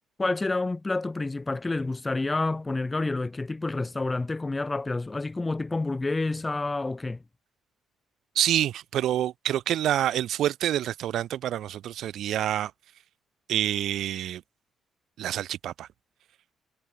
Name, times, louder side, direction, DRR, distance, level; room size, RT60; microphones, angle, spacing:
voice 1, 0.2-7.2, left 3 dB, 20° left, 2.8 m, -29 dB
voice 2, 8.3-12.7 13.5-14.4 15.2-15.9, right 12 dB, 75° right, 2.8 m, -27 dB
cardioid pair, 105°, 0 cm